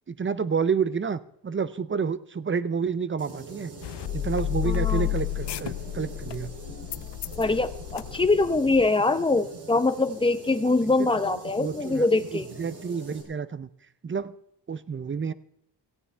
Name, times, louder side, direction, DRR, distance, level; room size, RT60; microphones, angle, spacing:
voice 1, 0.1-3.7 4.1-6.5 11.6-13.7 14.0-14.4 14.7-15.3, right 6 dB, 30° right, 16 dB, 0.5 m, -29 dB
sound 1, 3.2-13.2, right 3 dB, 65° right, 3.7 m, -43 dB
sound 2, 3.8-8.9, left 15 dB, 70° left, 0.5 m, -31 dB
voice 2, 4.6-5.1 7.4-12.5, left 3 dB, 10° left, 10 dB, 0.8 m, -23 dB
17.5 x 15.0 x 3.4 m, 0.73 s
wide cardioid pair, 140°, 43 cm